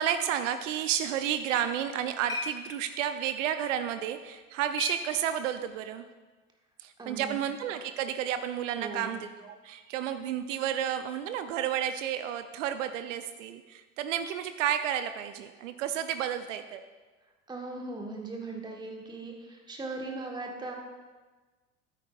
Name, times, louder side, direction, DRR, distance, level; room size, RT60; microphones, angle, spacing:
voice 1, 0.0-6.0 6.8-16.8, right 10 dB, 65° right, 10 dB, 0.6 m, -31 dB
sound 1, 1.5-5.8, left 1 dB, 10° left, 3.4 m, -42 dB
voice 2, 7.0-7.4 8.8-9.1 17.5-20.7, right 3 dB, 10° right, 1 dB, 1.4 m, -39 dB
14.5 x 9.0 x 2.4 m, 1.3 s
figure-of-eight pair, 70°, 40 cm